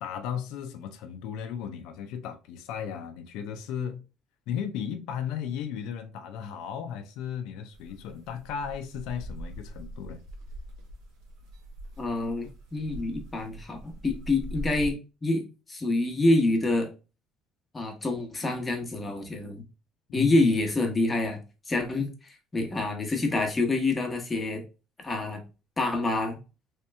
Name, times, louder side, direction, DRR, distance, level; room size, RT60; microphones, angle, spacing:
voice 1, 0.0-4.0 4.5-10.2 20.2-20.5, left 8 dB, 80° left, 0.5 m, -35 dB
sound 1, 7.7-14.9, equal, 85° right, 1.0 m, -42 dB
voice 2, 12.0-16.9 17.7-19.6 20.1-21.4 21.7-24.6 25.0-25.4 25.8-26.4, left 2 dB, 20° left, 0.9 m, -27 dB
3.2 x 2.9 x 3.3 m
cardioid pair, 130°, 0 cm